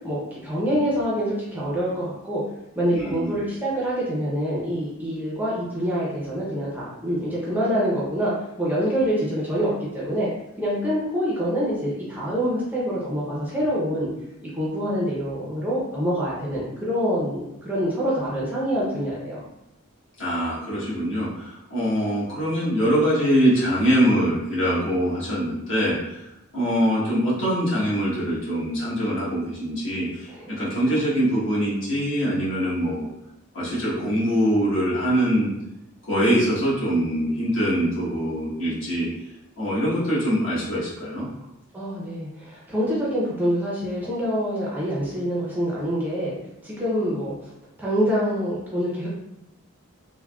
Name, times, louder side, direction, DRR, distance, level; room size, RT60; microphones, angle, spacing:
voice 1, 0.0-2.4 2.8-8.3 8.6-10.3 10.6-14.1 14.4-19.4 30.3-31.0 41.7-46.3 46.6-47.3 47.8-49.1, equal, 10° right, -7 dB, 0.5 m, -26 dB
voice 2, 2.9-3.4 20.2-26.2 26.5-30.3 30.6-33.1 33.5-35.5 36.1-39.1 39.6-41.2, equal, 60° left, -8 dB, 1.3 m, -23 dB
3.4 x 2.1 x 2.3 m, 0.88 s
head